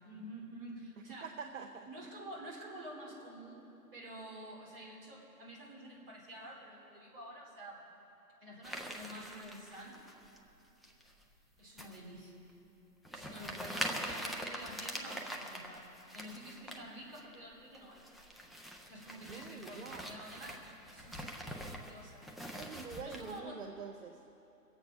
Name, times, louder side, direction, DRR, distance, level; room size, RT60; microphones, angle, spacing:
voice 1, 0.0-1.4 1.9-3.6 3.9-7.8 8.4-10.0 11.6-12.5 13.1-15.9 16.1-18.0 18.8-20.6 20.9-23.7, right 1 dB, 35° right, -3 dB, 3.5 m, -49 dB
voice 2, 1.2-1.9 19.3-20.1 22.6-24.2, right 5 dB, 55° right, 6 dB, 0.7 m, -46 dB
sound 1, 8.6-10.4 10.8-11.2 11.8-12.0 12.5-12.6 13.0-16.8 17.1-17.3 17.7-23.4, equal, ahead, 0.3 m, -44 dB
22.5 x 8.3 x 5.2 m, 3.0 s
figure-of-eight pair, 130°, 47 cm